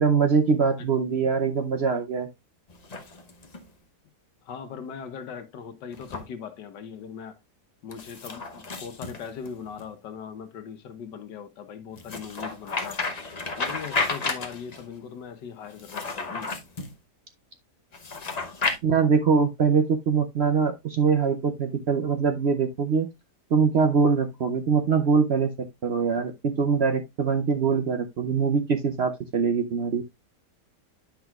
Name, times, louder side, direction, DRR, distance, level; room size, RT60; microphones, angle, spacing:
voice 1, 0.0-2.3 18.8-23.1 23.5-30.0, right 5 dB, 60° right, 0.7 m, -23 dB
sound 1, 2.7-3.7 5.9-6.3 7.9-9.8 12.0-14.8 15.7-16.9 17.9-18.8, left 3 dB, 35° left, 0.7 m, -32 dB
voice 2, 4.4-7.4 7.8-13.2 13.6-16.5, left 7 dB, 90° left, 1.7 m, -40 dB
10.0 x 5.9 x 2.3 m
omnidirectional pair, 1.8 m